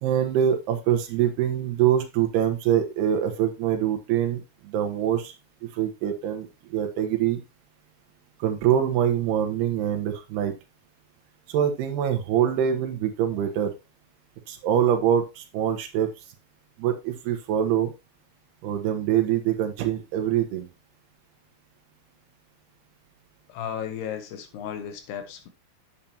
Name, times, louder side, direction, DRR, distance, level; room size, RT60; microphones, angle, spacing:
voice 1, 0.0-5.3 5.7-7.4 8.4-10.5 11.5-13.7 14.5-16.1 16.8-17.9 18.6-20.7, right 10 dB, 80° right, 3.3 m, -24 dB
voice 2, 23.5-25.5, left 8 dB, 80° left, 3.3 m, -34 dB
8.8 x 8.5 x 2.9 m
omnidirectional pair, 4.6 m